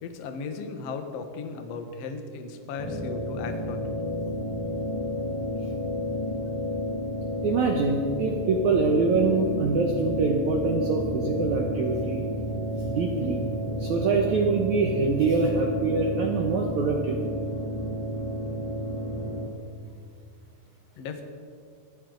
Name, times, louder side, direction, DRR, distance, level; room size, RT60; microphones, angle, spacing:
voice 1, 0.0-3.9 21.0-21.2, left 4 dB, 80° left, 6 dB, 1.4 m, -36 dB
sound 1, 2.8-19.5, equal, 30° left, 0.5 m, -31 dB
voice 2, 7.4-12.3 12.8-13.5 13.8-17.2, right 4 dB, 75° right, 2 dB, 1.7 m, -25 dB
23.0 x 15.0 x 4.0 m, 2.2 s
omnidirectional pair, 4.9 m